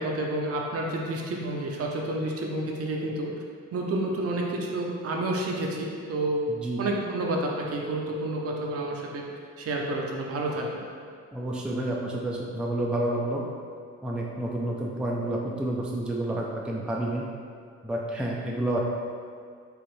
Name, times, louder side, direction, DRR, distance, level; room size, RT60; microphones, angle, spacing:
voice 1, 0.0-3.3 3.7-6.4 6.8-9.2 9.6-10.8, right 2 dB, 50° right, 0 dB, 0.6 m, -29 dB
voice 2, 6.5-6.8 11.3-13.4 14.0-17.2 17.8-18.8, right 1 dB, 5° right, -3 dB, 0.4 m, -29 dB
4.8 x 2.5 x 3.1 m, 2.1 s
cardioid pair, 90°, 30 cm